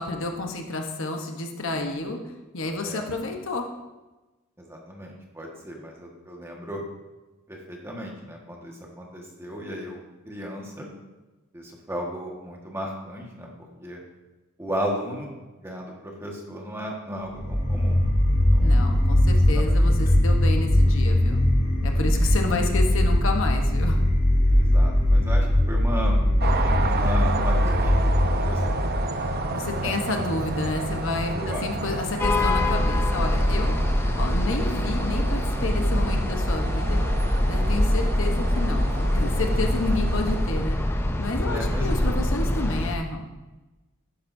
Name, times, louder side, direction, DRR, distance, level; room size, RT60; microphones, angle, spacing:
voice 1, 0.0-2.2 2.5-3.7 18.6-21.4 21.8-24.0 29.5-33.8 34.1-37.0 37.5-40.8 41.2-43.3, left 2 dB, 65° left, 3 dB, 1.1 m, -30 dB
voice 2, 4.6-6.8 7.5-10.0 10.2-10.9 11.5-14.0 14.6-15.3 15.6-18.0 18.3-18.8 19.2-19.9 22.1-22.5 24.5-26.2 26.8-28.6 29.8-30.0 31.3-31.7 41.5-41.9, equal, 10° right, -1 dB, 1.5 m, -35 dB
sound 1, 17.3-34.4, left 1 dB, 40° left, 2.2 m, -21 dB
sound 2, 26.4-40.7, right 3 dB, 45° right, 0.8 m, -32 dB
sound 3, 32.2-43.0, left 1 dB, 10° left, 0.5 m, -24 dB
11.5 x 10.0 x 2.7 m, 1.1 s
head